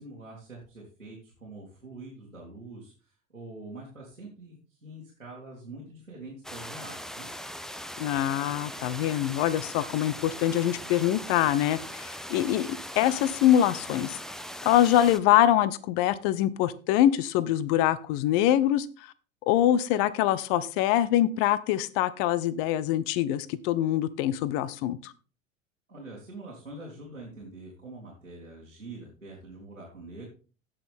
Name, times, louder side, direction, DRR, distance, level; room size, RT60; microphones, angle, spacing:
voice 1, 0.0-7.3 25.9-30.2, right 2 dB, 90° right, -4 dB, 2.9 m, -45 dB
sound 1, 6.4-15.2, equal, ahead, 0.6 m, -40 dB
voice 2, 8.0-14.2 14.6-18.9 19.4-25.1, left 12 dB, 45° left, 18 dB, 0.9 m, -24 dB
16.5 x 6.1 x 3.6 m, 0.38 s
figure-of-eight pair, 80°, 39 cm